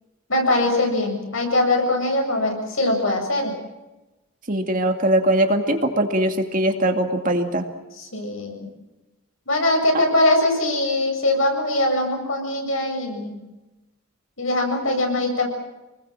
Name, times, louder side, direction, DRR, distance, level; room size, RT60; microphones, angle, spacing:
voice 1, 0.3-3.5 8.1-8.7 9.5-13.4 14.4-15.5, left 1 dB, 70° left, 2 dB, 7.8 m, -22 dB
voice 2, 4.5-7.6 9.9-10.1, right 1 dB, 40° right, 4 dB, 2.4 m, -21 dB
28.5 x 20.5 x 7.6 m, 1.0 s
head